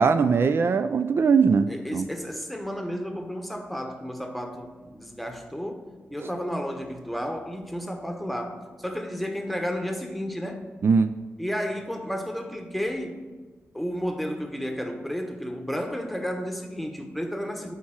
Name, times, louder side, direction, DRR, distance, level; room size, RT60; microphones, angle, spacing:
voice 1, 0.0-2.0 10.8-11.1, right 5 dB, 55° right, 10 dB, 0.3 m, -21 dB
voice 2, 1.7-5.8 6.1-10.6 11.4-13.2 13.7-17.7, equal, ahead, 4 dB, 1.0 m, -32 dB
9.3 x 4.3 x 7.4 m, 1.4 s
wide cardioid pair, 100°, 5 cm